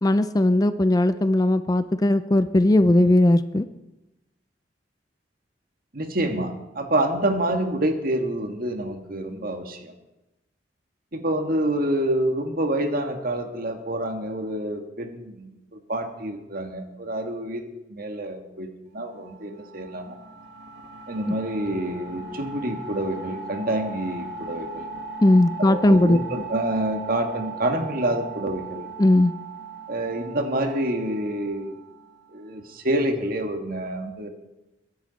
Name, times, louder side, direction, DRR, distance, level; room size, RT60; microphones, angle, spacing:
voice 1, 0.0-3.6 25.2-26.2 29.0-29.3, left 1 dB, 20° left, 13 dB, 0.4 m, -18 dB
voice 2, 5.9-9.9 11.1-20.2 21.1-24.9 25.6-28.9 29.9-31.7 32.3-34.3, right 1 dB, 55° right, 5 dB, 1.7 m, -27 dB
sound 1, 19.0-32.4, right 4 dB, 75° right, 2.0 m, -39 dB
21.5 x 10.5 x 4.1 m, 0.99 s
head